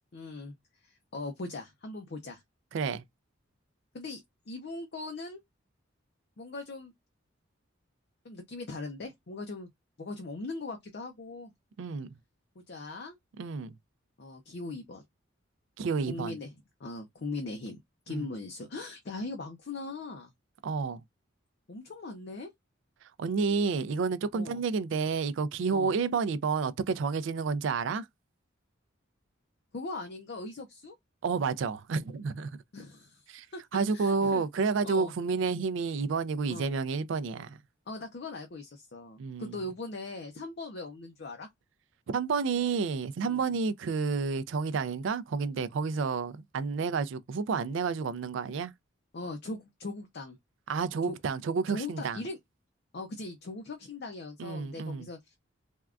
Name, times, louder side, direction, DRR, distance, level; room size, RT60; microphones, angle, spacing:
voice 1, 0.1-0.6 0.8-2.4 3.9-4.2 4.5-5.4 6.4-6.9 8.2-9.7 10.0-11.5 12.7-13.2 14.2-15.0 16.1-16.5 16.8-17.8 18.1-20.3 21.7-22.5 24.3-24.6 25.7-25.9 29.7-30.9 32.7-33.2 33.5-33.6 33.9-35.1 36.5-36.7 37.9-41.5 43.2-43.5 49.1-50.4 51.1-51.2 51.7-52.4 52.9-55.3, left 2 dB, 55° left, 0.5 m, -40 dB
voice 2, 2.7-3.0 11.8-12.1 13.4-13.7 15.8-16.3 18.1-18.3 20.6-21.0 23.2-28.1 31.2-32.5 33.3-33.5 33.7-37.6 39.2-39.6 42.1-48.7 50.7-52.2 54.4-55.1, right 5 dB, 65° right, 0.3 m, -30 dB
3.5 x 2.2 x 2.3 m
head